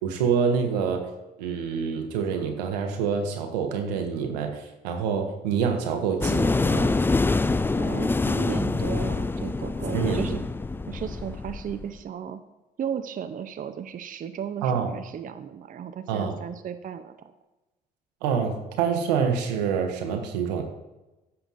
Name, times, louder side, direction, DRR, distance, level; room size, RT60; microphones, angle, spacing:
voice 1, 0.0-1.0 1.4-7.0 9.9-10.4 14.6-14.9 16.1-16.3 18.2-20.6, right 6 dB, 80° right, 4 dB, 1.0 m, -26 dB
sound 1, 6.2-11.8, left 3 dB, 10° left, 0.3 m, -25 dB
voice 2, 7.8-10.4 10.9-12.4 12.8-17.3, right 8 dB, 40° right, 8 dB, 0.6 m, -35 dB
14.0 x 5.8 x 2.6 m, 1.1 s
figure-of-eight pair, 45°, 21 cm